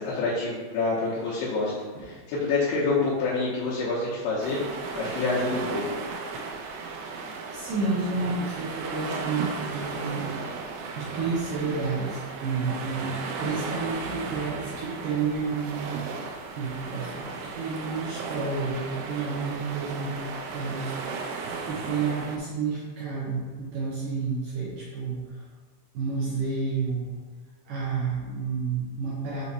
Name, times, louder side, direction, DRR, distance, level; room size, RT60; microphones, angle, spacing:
voice 1, 0.0-1.7 2.0-4.6 4.9-5.8 13.5-13.9, left 3 dB, 75° left, -10 dB, 3.2 m, -27 dB
sound 1, 4.4-22.4, right 4 dB, 90° right, 2.9 m, -35 dB
voice 2, 7.5-10.3 11.0-13.1 13.4-20.2 20.5-21.3 21.6-25.4 25.9-27.1 27.7-29.4, right 4 dB, 75° right, -6 dB, 2.0 m, -30 dB
7.6 x 3.1 x 4.1 m, 1.5 s
omnidirectional pair, 5.1 m